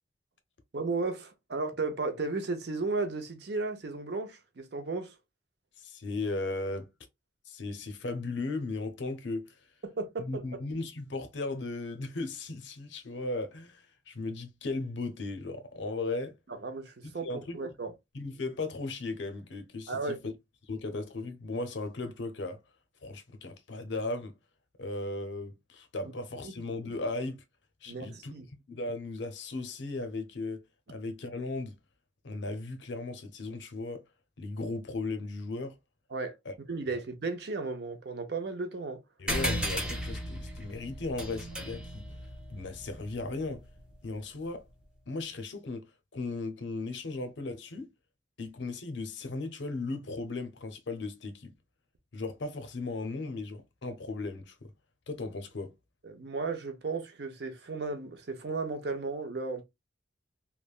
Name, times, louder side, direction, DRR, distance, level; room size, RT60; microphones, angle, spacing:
voice 1, 0.7-5.2 9.8-10.6 16.5-17.9 19.9-20.2 27.9-28.5 36.1-36.4 36.7-39.0 56.0-59.6, right 3 dB, 60° right, 0.6 m, -34 dB
voice 2, 5.8-6.9 7.5-9.6 10.2-16.4 17.0-17.6 18.1-20.3 20.7-22.6 23.0-24.4 24.8-27.4 27.8-28.3 28.7-31.8 32.2-34.0 34.4-35.8 36.5-36.6 39.2-42.1 42.5-43.6 44.0-44.6 45.1-47.9 48.4-51.5 52.1-54.7 55.1-55.7, left 3 dB, 70° left, 0.6 m, -36 dB
sound 1, 39.3-44.2, equal, 5° right, 0.5 m, -36 dB
3.2 x 2.0 x 2.3 m
head